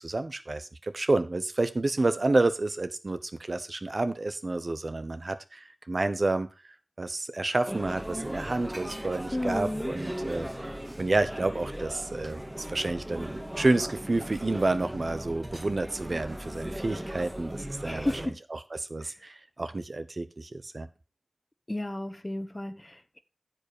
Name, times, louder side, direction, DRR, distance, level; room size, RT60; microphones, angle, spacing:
voice 1, 0.0-6.5 7.0-20.9, right 2 dB, 60° right, 1.0 m, -29 dB
sound 1, 7.7-18.3, equal, 20° right, 2.0 m, -38 dB
voice 2, 9.3-9.9 17.9-18.4 19.0-19.1 21.7-23.2, left 1 dB, 25° left, 1.1 m, -33 dB
9.9 x 7.6 x 4.8 m
wide cardioid pair, 45°, 0 cm